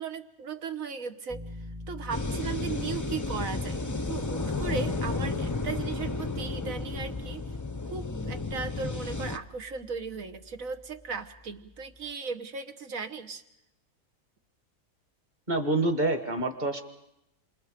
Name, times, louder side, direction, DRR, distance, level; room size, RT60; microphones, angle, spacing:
voice 1, 0.0-7.5 7.9-13.4, right 5 dB, 70° right, 9 dB, 1.6 m, -37 dB
Piano, 1.3-12.1, left 2 dB, 15° right, 1.1 m, -46 dB
sound 1, 2.1-9.4, left 3 dB, 20° left, 0.6 m, -32 dB
voice 2, 15.5-16.8, right 2 dB, 30° right, 7 dB, 1.9 m, -27 dB
28.0 x 26.5 x 5.2 m, 0.81 s
omnidirectional pair, 1.5 m